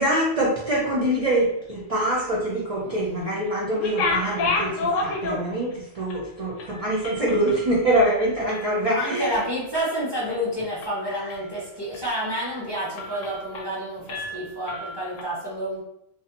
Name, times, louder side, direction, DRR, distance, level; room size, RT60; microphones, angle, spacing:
voice 1, 0.0-9.3 10.3-10.4, right 1 dB, 50° right, -4 dB, 0.4 m, -24 dB
sound 1, 3.7-5.7 6.1-6.2 6.6-8.7 9.1-9.4 9.7-10.4 10.8-11.5 11.9-12.1 12.5-12.6 13.0-13.8 14.1-15.2, left 3 dB, 85° left, 0.9 m, -30 dB
voice 2, 8.6-15.8, equal, 25° left, -7 dB, 0.6 m, -29 dB
2.6 x 2.1 x 2.7 m, 0.77 s
omnidirectional pair, 1.3 m